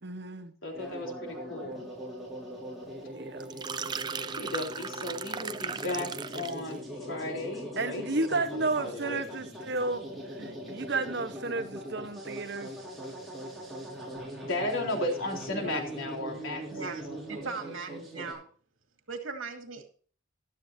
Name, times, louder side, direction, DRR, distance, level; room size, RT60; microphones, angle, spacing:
voice 1, 0.0-0.5 1.6-1.7 3.1-3.6 3.9-4.0 7.5-10.0 10.3-12.7, right 3 dB, 55° right, 1.1 m, -33 dB
voice 2, 0.6-1.8 4.2-9.2 14.4-16.6 17.1-17.2, left 1 dB, 70° left, 3.8 m, -35 dB
sound 1, 0.7-18.3, equal, ahead, 5.6 m, -41 dB
sound 2, 3.4-6.7, right 6 dB, 20° right, 0.4 m, -37 dB
voice 3, 16.7-18.5 19.1-19.9, right 4 dB, 75° right, 2.6 m, -39 dB
15.5 x 12.0 x 2.7 m
head